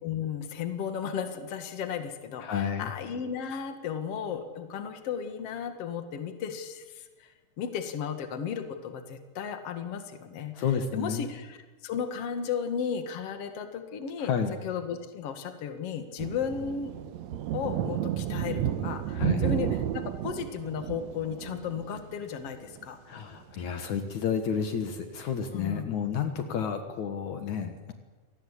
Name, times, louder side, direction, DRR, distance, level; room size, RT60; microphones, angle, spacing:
voice 1, 0.0-7.3 7.6-10.6 10.9-11.6 11.8-14.3 14.6-16.9 17.5-23.0 25.5-26.0, left 7 dB, 50° left, 7 dB, 2.7 m, -34 dB
voice 2, 2.4-2.9 10.5-11.3 14.2-14.6 19.1-19.5 23.1-27.9, left 7 dB, 70° left, 7 dB, 2.8 m, -31 dB
sound 1, 16.2-22.4 22.7-22.9 23.4-23.8 24.3-24.4 25.5-25.6, right 11 dB, 70° right, 2.1 m, -32 dB
27.0 x 19.0 x 8.3 m, 1.3 s
omnidirectional pair, 3.6 m